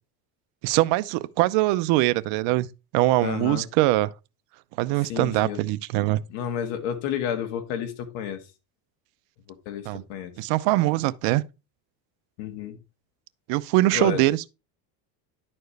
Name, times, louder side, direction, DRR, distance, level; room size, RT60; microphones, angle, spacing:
voice 1, 0.6-2.7 2.9-4.1 4.8-6.2 9.9-10.0 10.4-11.4 13.5-14.5, right 17 dB, 65° right, 0.6 m, -22 dB
voice 2, 3.2-3.7 5.1-5.6 6.3-8.4 9.7-10.3 12.4-12.8 13.9-14.3, left 9 dB, 70° left, 1.7 m, -31 dB
10.5 x 4.4 x 3.3 m
supercardioid pair, 115°, 48 cm